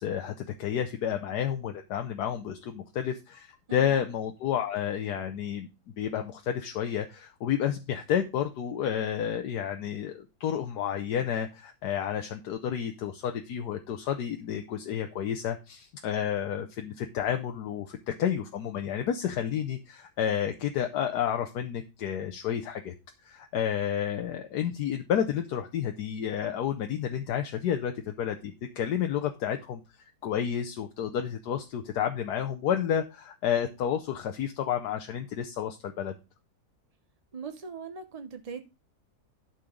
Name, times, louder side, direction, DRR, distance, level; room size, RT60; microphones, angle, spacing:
voice 1, 0.0-5.7 6.0-22.9 23.2-29.8 30.2-36.1, left 9 dB, 80° left, 1.3 m, -30 dB
voice 2, 37.3-38.6, right 5 dB, 40° right, 0.5 m, -40 dB
11.5 x 4.4 x 5.1 m
omnidirectional pair, 1.7 m